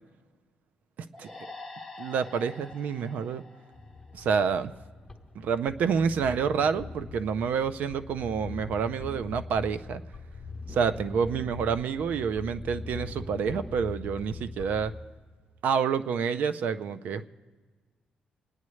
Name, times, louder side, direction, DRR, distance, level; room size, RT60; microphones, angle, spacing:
sound 1, 1.1-4.6, left 3 dB, 10° right, 2.0 m, -46 dB
voice 1, 2.0-3.4 4.1-4.7 5.4-10.0 10.7-14.9 15.6-17.3, right 6 dB, 70° right, 11 dB, 0.5 m, -28 dB
sound 2, 3.7-14.9, left 3 dB, 10° left, 1.1 m, -41 dB
24.5 x 9.6 x 3.2 m, 1.4 s
cardioid pair, 160°, 3 cm